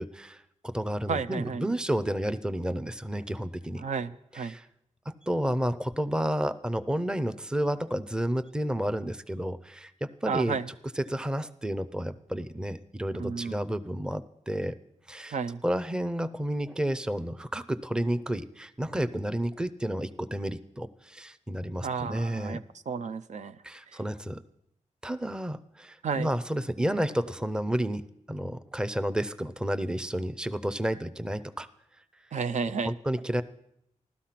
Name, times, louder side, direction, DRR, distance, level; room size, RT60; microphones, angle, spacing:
voice 1, 0.0-3.8 4.3-4.6 5.1-10.6 11.0-14.8 15.1-15.4 15.6-22.6 23.6-24.4 25.0-28.0 28.3-31.7 32.8-33.4, right 1 dB, 5° right, 13 dB, 0.6 m, -31 dB
voice 2, 1.1-1.7 3.8-4.6 10.2-10.7 13.2-13.6 15.3-15.6 21.8-23.6 23.9-24.0 26.0-26.3 32.3-32.9, right 5 dB, 70° right, 11 dB, 0.6 m, -32 dB
15.5 x 12.5 x 5.8 m, 0.77 s
wide cardioid pair, 125°, 13 cm